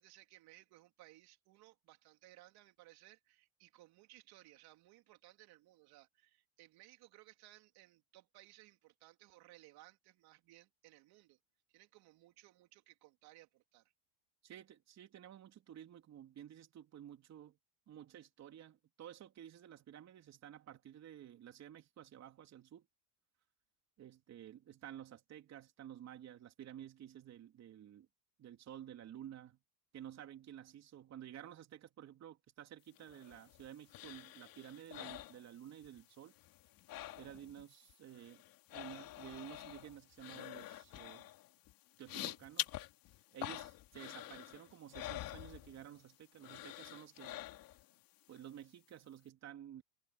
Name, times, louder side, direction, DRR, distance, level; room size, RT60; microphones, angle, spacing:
voice 1, 0.0-11.4 11.7-13.9, right 17 dB, 45° right, 3.5 m, -62 dB
voice 2, 14.4-17.6 17.9-22.9 24.0-28.1 28.4-29.6 29.9-36.3 37.2-38.4 38.7-41.3 42.0-42.7 43.3-47.4 48.3-49.8, right 10 dB, 30° right, 3.7 m, -52 dB
sound 1, 33.0-36.0 36.3-37.6 37.9-46.1 46.4-47.9 48.3-48.4, left 15 dB, 45° left, 2.9 m, -47 dB
supercardioid pair, 140°, 50 cm